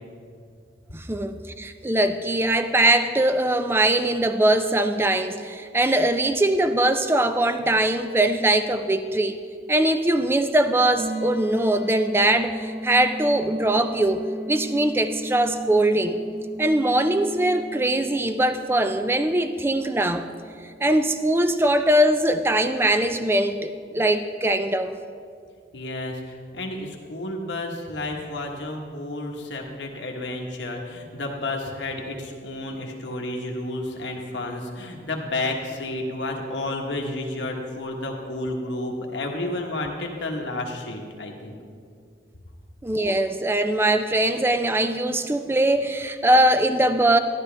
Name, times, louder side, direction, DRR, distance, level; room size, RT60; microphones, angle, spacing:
voice 1, 0.9-16.2 16.6-20.3 20.8-24.9 42.8-47.2, right 1 dB, 15° right, 9 dB, 0.3 m, -21 dB
sound 1, 11.0-21.7, right 1 dB, 5° left, 1.8 m, -36 dB
voice 2, 25.7-41.5, left 2 dB, 80° left, 1 dB, 1.3 m, -31 dB
12.0 x 11.5 x 3.4 m, 2.2 s
head